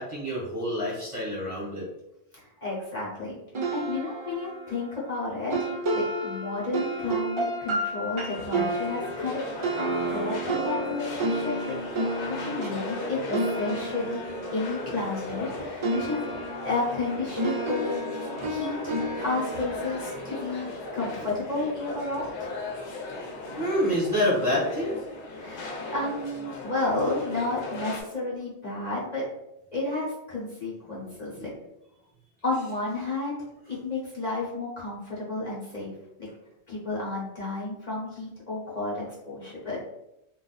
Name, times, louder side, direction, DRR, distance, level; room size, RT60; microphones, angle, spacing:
voice 1, 0.0-1.9 23.6-25.0 31.4-31.5, equal, 30° right, -6 dB, 1.1 m, -27 dB
voice 2, 2.3-3.4 3.7-5.7 5.9-11.7 12.2-14.2 14.5-18.0 18.5-18.8 19.2-22.5 25.3-29.3 29.7-31.5 32.4-36.3 36.7-39.9, left 3 dB, 40° left, -6 dB, 1.0 m, -32 dB
sound 1, 3.5-15.5 15.8-21.0, right 2 dB, 50° right, 0.3 m, -31 dB
sound 2, 8.3-28.0, left 2 dB, 80° left, 1.0 m, -37 dB
2.5 x 2.3 x 3.9 m, 0.85 s
omnidirectional pair, 1.1 m